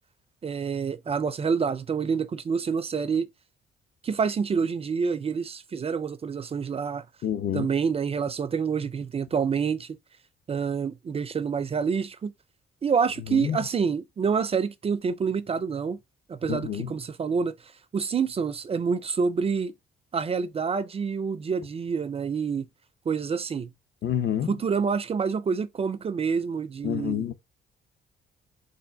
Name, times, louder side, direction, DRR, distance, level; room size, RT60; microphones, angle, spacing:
voice 1, 0.4-3.3 4.0-7.0 7.5-10.0 10.5-12.3 12.8-16.0 16.3-17.5 17.9-19.7 20.1-22.7 23.1-23.7 24.5-27.2, right 6 dB, 30° right, 0.4 m, -27 dB
voice 2, 7.2-7.7 13.3-13.6 16.5-16.9 24.0-24.5 26.8-27.3, left 10 dB, 55° left, 0.6 m, -28 dB
3.4 x 2.5 x 3.8 m
cardioid pair, 90°, 20 cm